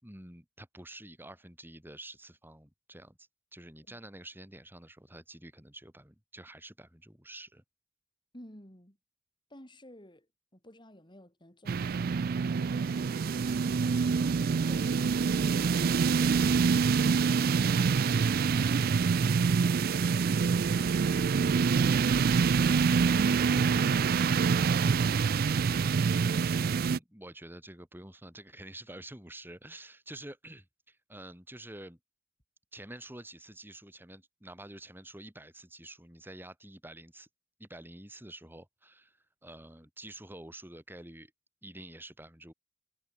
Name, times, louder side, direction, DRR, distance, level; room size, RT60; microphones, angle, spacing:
voice 1, 0.0-7.6 26.6-32.0 32.7-37.3 37.6-41.3 41.6-42.5, right 1 dB, 10° right, 5.0 m, -48 dB
voice 2, 8.3-9.0 9.5-10.3 10.5-13.9 14.5-16.5 16.8-20.4, left 1 dB, 25° left, 7.9 m, -55 dB
sound 1, 11.7-27.0, right 5 dB, 50° right, 0.4 m, -26 dB
head